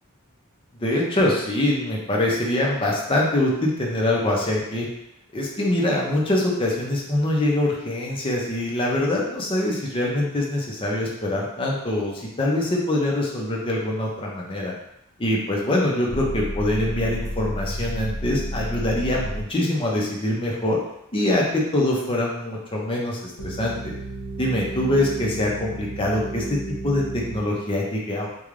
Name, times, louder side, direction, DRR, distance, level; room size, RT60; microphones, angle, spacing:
voice 1, 0.8-4.9 5.3-14.7 15.2-20.8 21.1-23.8 24.4-28.3, left 1 dB, 25° left, -2 dB, 0.7 m, -24 dB
sound 1, 16.1-19.5 23.4-27.4, right 1 dB, 75° left, 0.8 m, -32 dB
3.2 x 2.3 x 3.6 m, 0.80 s
head